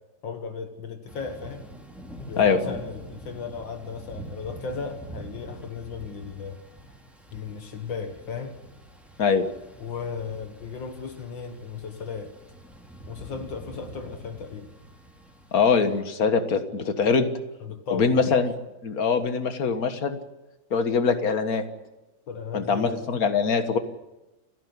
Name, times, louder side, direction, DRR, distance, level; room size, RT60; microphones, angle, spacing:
voice 1, 0.2-1.6 2.3-6.6 7.3-8.5 9.8-12.3 13.1-14.7 17.6-18.3 22.3-23.0, left 5 dB, 75° left, 6 dB, 2.3 m, -36 dB
Thunder / Rain, 1.1-16.0, right 1 dB, ahead, 3.0 m, -45 dB
voice 2, 2.4-2.7 9.2-9.4 15.5-17.3 17.9-18.5 18.8-20.2 20.7-21.6 22.5-23.8, left 5 dB, 50° left, 9 dB, 1.9 m, -23 dB
29.5 x 11.0 x 9.6 m, 1.0 s
omnidirectional pair, 2.1 m